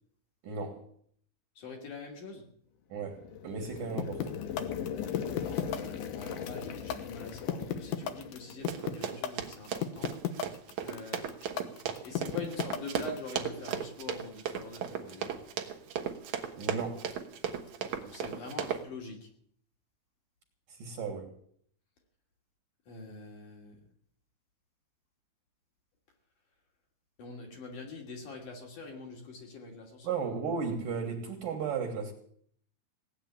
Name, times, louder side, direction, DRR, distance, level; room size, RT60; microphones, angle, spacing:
voice 1, 0.4-0.8 2.9-4.4 16.6-17.1 20.7-21.3 30.0-32.1, right 5 dB, 60° right, 3 dB, 2.7 m, -35 dB
voice 2, 1.6-2.5 5.3-10.1 10.8-11.3 12.0-15.5 18.0-19.3 22.9-23.8 27.2-30.1, left 3 dB, 45° left, 1 dB, 3.8 m, -44 dB
sound 1, 3.0-9.1, left 8 dB, 65° left, 2.2 m, -39 dB
sound 2, 4.0-13.2, left 11 dB, 80° left, 1.9 m, -33 dB
Run, 8.7-18.8, right 8 dB, 80° right, 1.6 m, -36 dB
17.5 x 9.2 x 8.5 m, 0.62 s
omnidirectional pair, 5.5 m